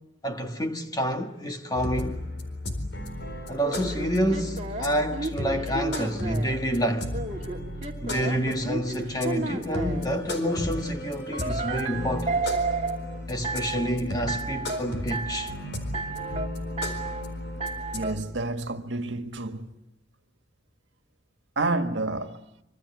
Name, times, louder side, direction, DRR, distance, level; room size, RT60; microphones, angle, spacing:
voice 1, 0.2-2.2 3.5-7.2 8.0-12.4 13.3-15.5, equal, 20° left, 1.7 m, -28 dB
sound 1, 1.7-18.2, left 1 dB, 65° left, 4.3 m, -35 dB
sound 2, 3.6-6.6 7.1-10.1 11.3-13.0 13.4-13.9 14.3-14.8 15.1-15.6 15.9-16.5 16.8-17.2 17.6-18.1, right 3 dB, 35° right, 2.4 m, -32 dB
voice 2, 17.9-19.7 21.5-22.4, right 2 dB, 75° right, 1.8 m, -29 dB
26.5 x 25.5 x 8.4 m
head